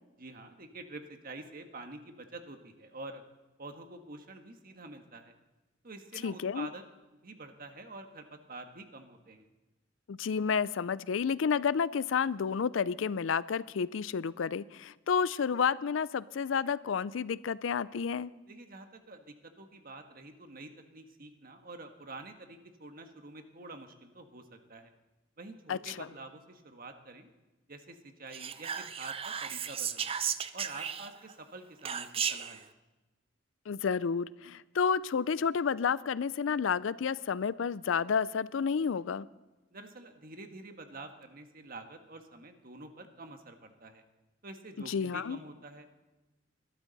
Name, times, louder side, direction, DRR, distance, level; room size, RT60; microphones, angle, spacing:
voice 1, 0.2-3.2 3.6-5.3 5.8-6.8 7.2-9.5 18.5-24.9 25.4-27.3 27.7-30.2 30.5-32.7 39.7-44.0 44.4-45.9, right 2 dB, 50° right, 6 dB, 1.4 m, -47 dB
voice 2, 6.2-6.7 10.1-18.3 25.7-26.1 33.7-39.3 44.9-45.4, left 6 dB, 75° left, 18 dB, 0.4 m, -30 dB
Whispering, 28.3-31.3 31.8-32.6, right 8 dB, 30° right, 0.5 m, -35 dB
21.0 x 13.0 x 4.1 m, 1.1 s
head